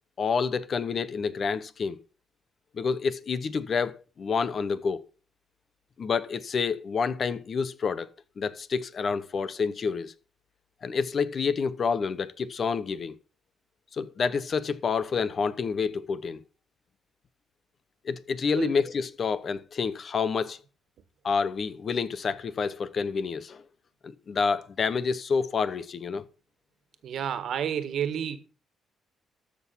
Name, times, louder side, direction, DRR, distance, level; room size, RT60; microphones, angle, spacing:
voice 1, 0.2-2.0 2.7-5.0 6.0-8.1 8.4-10.1 10.8-13.1 13.9-16.4 18.0-20.6 21.2-23.6 24.0-26.2, left 5 dB, 50° left, 1.0 m, -28 dB
voice 2, 27.0-28.4, right 8 dB, 70° right, 1.6 m, -30 dB
13.5 x 6.2 x 5.7 m
cardioid pair, 90°, 0 cm